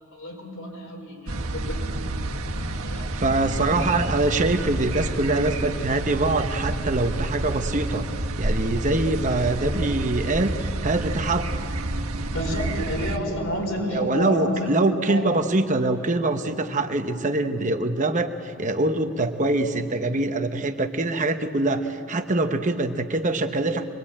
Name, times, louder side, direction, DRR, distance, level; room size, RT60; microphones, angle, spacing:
voice 1, 0.1-1.8 2.1-2.2 2.5-3.1 3.5-3.7 12.3-14.7 15.1-15.2, equal, 70° left, 0 dB, 5.3 m, -30 dB
sound 1, 1.3-13.2, right 1 dB, 75° right, 1.6 m, -29 dB
voice 2, 3.1-8.1 8.4-11.5 13.9-23.9, right 2 dB, 35° right, 6 dB, 1.0 m, -24 dB
24.5 x 21.5 x 8.7 m, 2.7 s
head